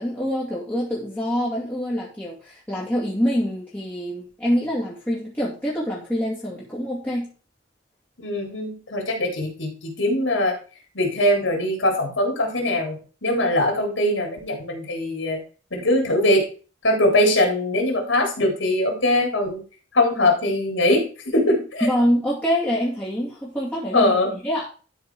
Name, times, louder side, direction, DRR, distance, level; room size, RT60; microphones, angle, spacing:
voice 1, 0.0-7.3 21.8-24.6, equal, 10° left, -7 dB, 2.5 m, -25 dB
voice 2, 8.2-10.6 10.9-15.4 15.7-16.5 16.8-19.6 19.9-21.9 23.9-24.3, left 1 dB, 90° left, 2 dB, 3.6 m, -21 dB
12.5 x 4.7 x 4.7 m, 0.37 s
head